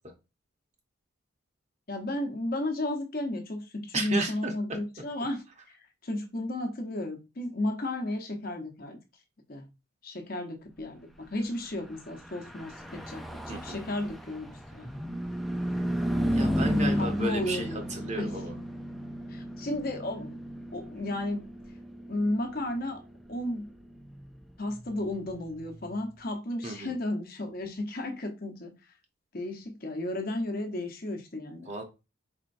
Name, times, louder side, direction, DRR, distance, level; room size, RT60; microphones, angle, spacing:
voice 1, 1.9-5.4 6.0-9.0 9.5-9.7 10.0-14.9 17.0-17.8 18.2-18.6 19.3-20.4 20.7-21.5 22.1-23.0 23.3-23.7 24.6-28.7 29.3-31.7, left 1 dB, 45° left, 0.9 m, -33 dB
voice 2, 3.9-4.5 13.5-13.8 16.3-18.5 26.6-26.9 31.7-31.8, right 2 dB, 35° right, 0.9 m, -33 dB
Car passing by / Truck, 12.1-25.8, equal, ahead, 0.4 m, -34 dB
4.4 x 4.3 x 2.6 m
head